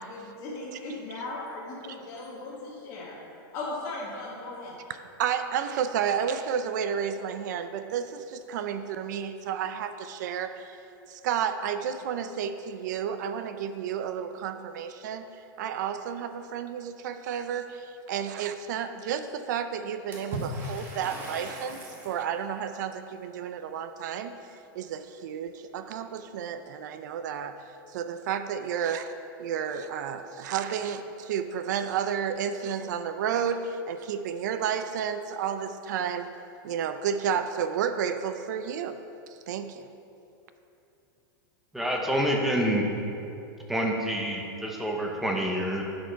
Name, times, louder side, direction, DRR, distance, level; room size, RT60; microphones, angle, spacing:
voice 1, 0.1-3.1 3.5-4.7, left 2 dB, 30° left, -8 dB, 1.3 m, -37 dB
voice 2, 5.2-10.8 11.1-24.3 24.7-27.6 27.9-29.1 29.4-36.3 36.6-39.0 39.5-39.9, right 8 dB, 50° right, 10 dB, 0.4 m, -31 dB
Water / Splash splatter, 20.1-22.2, equal, 20° right, 1.0 m, -37 dB
voice 3, 41.7-42.9 43.7-45.8, equal, ahead, 0 dB, 0.6 m, -27 dB
10.5 x 5.2 x 4.5 m, 2.8 s
supercardioid pair, 175°, 12 cm